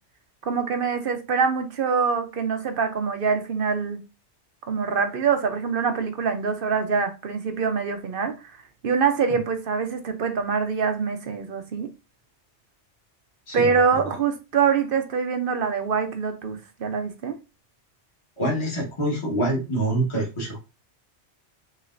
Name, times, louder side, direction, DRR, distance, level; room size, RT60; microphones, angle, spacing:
voice 1, 0.4-4.0 4.7-8.3 8.8-11.9 13.5-17.4, right 5 dB, 55° right, 0.8 m, -24 dB
voice 2, 18.4-20.7, right 1 dB, 25° left, 1.5 m, -25 dB
6.4 x 2.9 x 2.6 m
omnidirectional pair, 1.2 m